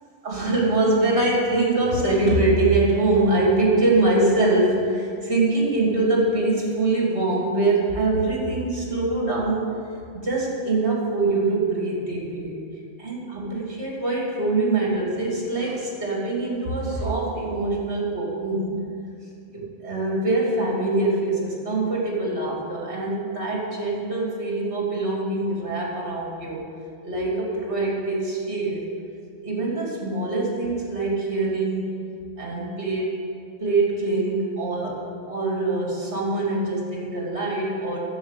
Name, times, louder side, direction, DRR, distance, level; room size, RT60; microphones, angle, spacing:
voice 1, 0.2-9.8 10.1-12.5 13.0-18.9 19.5-26.6 27.0-28.8 29.4-32.0 32.4-33.2 33.6-38.0, right 2 dB, 65° right, -3 dB, 3.0 m, -23 dB
10.0 x 7.4 x 8.5 m, 2.4 s
omnidirectional pair, 1.2 m